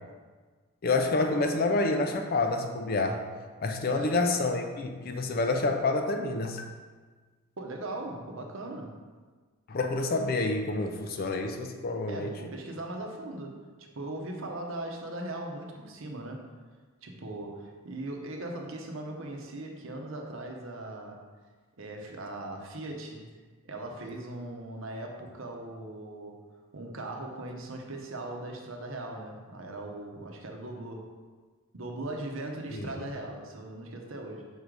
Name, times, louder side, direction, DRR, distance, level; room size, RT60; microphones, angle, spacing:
voice 1, 0.8-3.3 3.6-6.7 9.7-12.3 32.7-32.9, left 3 dB, 45° left, 5 dB, 0.5 m, -28 dB
voice 2, 3.9-4.2 7.6-9.0 12.1-16.4 17.0-21.2 21.8-23.3 23.6-26.4 26.7-31.1 31.7-34.5, right 2 dB, 65° right, 1 dB, 0.8 m, -39 dB
5.5 x 3.8 x 4.7 m, 1.4 s
head